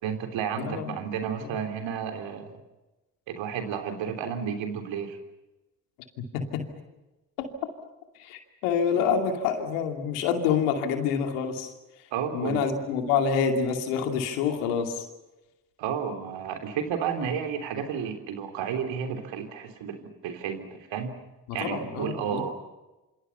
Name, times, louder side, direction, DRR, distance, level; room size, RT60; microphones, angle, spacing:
voice 1, 0.0-2.6 3.3-5.2 12.1-12.6 15.8-21.1 21.5-22.5, right 7 dB, 80° right, 6 dB, 3.6 m, -32 dB
voice 2, 0.6-0.9 6.2-6.7 7.4-7.5 8.2-11.7 12.3-15.1 21.5-22.5, left 6 dB, 90° left, 5 dB, 2.7 m, -27 dB
28.0 x 26.0 x 5.7 m, 1.1 s
hypercardioid pair, 40°, 45 cm